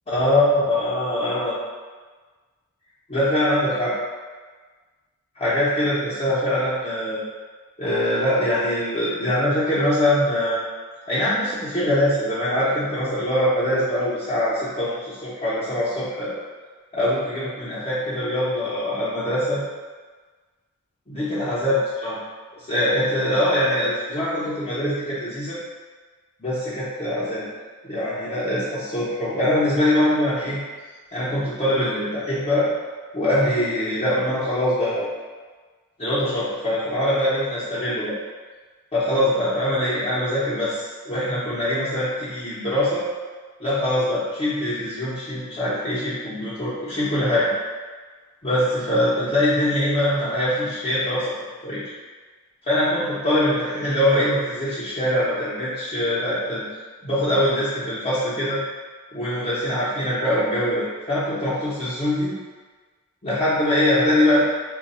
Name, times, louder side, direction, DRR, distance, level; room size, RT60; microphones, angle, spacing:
voice 1, 0.1-1.6 3.1-3.9 5.4-7.2 7.8-10.6 11.1-16.3 16.9-19.6 21.1-22.2 22.7-25.6 26.4-27.4 27.8-30.6 31.1-32.7 33.1-35.1 36.0-38.1 38.9-43.0 43.6-47.5 48.4-51.3 51.6-51.8 52.7-56.6 57.0-58.6 59.1-62.3 63.2-64.4, left 1 dB, 30° left, -12 dB, 0.7 m, -23 dB
3.1 x 2.2 x 4.1 m, 1.4 s
head